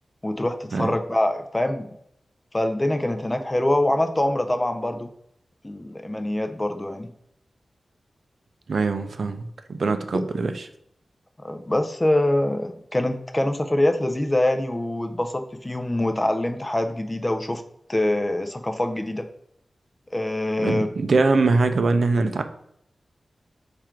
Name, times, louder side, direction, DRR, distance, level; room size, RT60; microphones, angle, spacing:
voice 1, 0.2-1.9 2.5-5.1 5.6-7.1 11.4-17.6 17.9-19.2 20.1-20.9, left 1 dB, 15° left, 6 dB, 0.4 m, -24 dB
voice 2, 8.7-10.7 20.6-22.4, right 3 dB, 60° right, 8 dB, 0.4 m, -22 dB
4.7 x 2.5 x 4.4 m, 0.72 s
wide cardioid pair, 130°, 0 cm